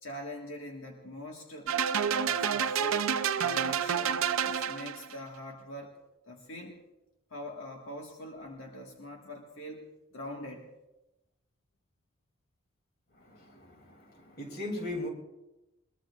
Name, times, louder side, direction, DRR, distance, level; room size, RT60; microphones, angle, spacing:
voice 1, 0.0-1.7 2.1-3.1 3.4-6.0 6.3-6.8 7.3-10.7, left 1 dB, 80° left, 0 dB, 1.7 m, -43 dB
sound 1, 1.7-5.1, right 7 dB, 85° right, 0.6 m, -29 dB
voice 2, 13.2-15.1, left 1 dB, 50° left, 1 dB, 2.9 m, -38 dB
22.0 x 21.0 x 2.4 m, 0.97 s
head